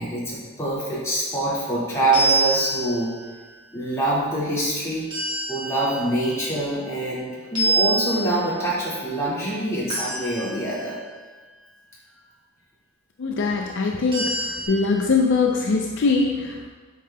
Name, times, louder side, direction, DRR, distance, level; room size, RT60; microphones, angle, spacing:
voice 1, 0.0-3.1 3.7-5.1 5.5-11.0, right 1 dB, 15° left, -9 dB, 1.9 m, -25 dB
sound 1, 2.1-3.3 5.1-7.1 7.6-8.8 9.9-10.9 14.1-14.7, right 1 dB, 20° right, 1.4 m, -26 dB
voice 2, 13.2-14.3 14.7-16.7, left 4 dB, 55° left, 1 dB, 0.4 m, -22 dB
8.3 x 5.5 x 2.2 m, 1.4 s
head